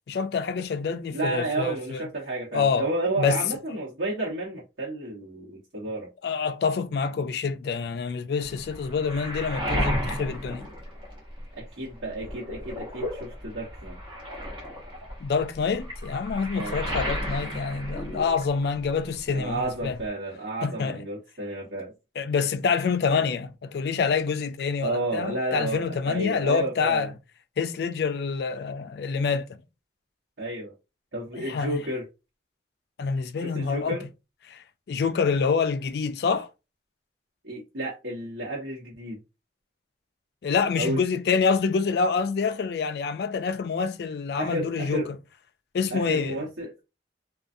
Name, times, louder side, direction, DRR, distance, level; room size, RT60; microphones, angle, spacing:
voice 1, 0.1-2.1 2.5-2.9 3.2-3.4 6.2-10.7 15.2-20.0 20.6-21.1 22.2-27.1 27.6-29.6 31.4-31.8 33.0-34.0 34.5-36.5 40.4-45.0 45.7-46.5, left 5 dB, 60° left, 0.3 m, -27 dB
voice 2, 1.1-6.1 11.6-14.0 16.5-16.8 19.3-21.9 23.1-23.2 24.8-27.1 30.4-30.7 31.1-32.1 33.4-34.1 37.4-39.2 40.8-41.0 44.4-45.1 45.9-46.7, right 2 dB, 90° right, 1.0 m, -31 dB
Waves surf, 8.4-11.6 12.0-18.9 19.1-20.1, equal, 25° right, 0.9 m, -33 dB
2.4 x 2.3 x 2.5 m
head